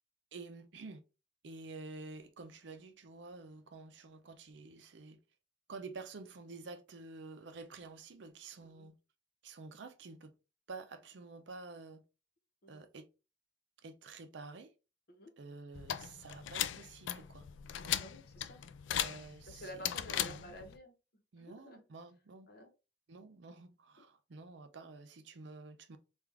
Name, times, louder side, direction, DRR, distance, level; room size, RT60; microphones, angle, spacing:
voice 1, 0.3-1.0 1.4-5.2 5.7-9.0 9.4-10.3 10.7-12.0 12.7-13.1 13.8-14.7 15.4-17.5 17.7-18.0 18.9-19.8 20.2-20.5 21.3-22.5 23.1-26.0, right 3 dB, 70° right, 0.5 m, -50 dB
sound 1, 15.7-20.8, left 10 dB, 80° left, 0.3 m, -38 dB
voice 2, 18.0-18.6 18.9-19.1 19.5-20.9 21.4-21.8 22.5-22.7 24.0-24.1, equal, 55° left, 0.9 m, -51 dB
3.5 x 2.4 x 3.3 m
head